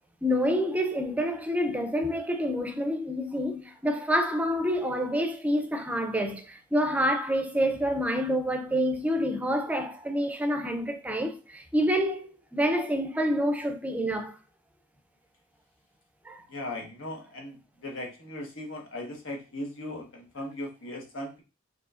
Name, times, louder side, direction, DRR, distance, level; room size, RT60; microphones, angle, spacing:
voice 1, 0.2-14.4 16.3-16.4, equal, 5° right, 0.4 m, -27 dB
voice 2, 16.5-21.4, left 1 dB, 80° left, 1.3 m, -38 dB
4.8 x 3.1 x 2.4 m
head